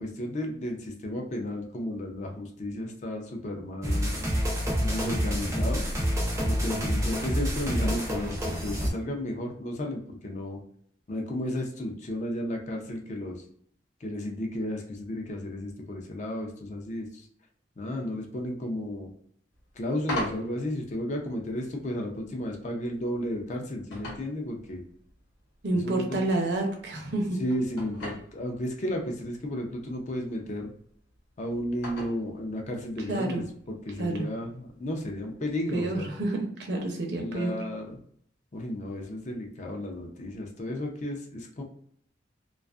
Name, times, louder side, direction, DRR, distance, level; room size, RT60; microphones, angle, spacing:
voice 1, 0.0-4.2 4.8-5.8 6.5-10.6 11.1-13.4 14.0-17.3 17.8-19.1 19.8-24.8 25.7-26.2 27.4-30.7 31.4-36.1 37.2-38.0 38.5-41.6, left 1 dB, 40° left, 2 dB, 0.5 m, -33 dB
sound 1, 3.8-8.9, equal, 15° right, 0.5 m, -28 dB
sound 2, 19.5-35.8, left 1 dB, 75° left, 0.9 m, -44 dB
voice 2, 25.6-27.4 33.1-33.4 34.0-34.3 35.7-37.5, right 2 dB, 65° right, 2 dB, 0.6 m, -29 dB
2.4 x 2.3 x 2.3 m, 0.63 s
head